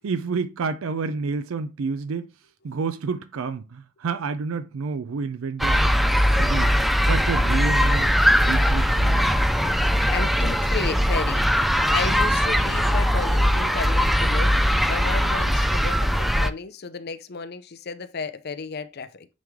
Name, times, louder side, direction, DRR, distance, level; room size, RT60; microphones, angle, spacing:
voice 1, 0.0-2.3 2.6-6.0 6.4-8.1 8.4-9.3, right 4 dB, 85° right, 0.4 m, -29 dB
sound 1, 5.6-16.5, equal, ahead, 0.3 m, -20 dB
voice 2, 10.1-19.3, left 5 dB, 50° left, 0.6 m, -33 dB
9.2 x 3.2 x 3.5 m
head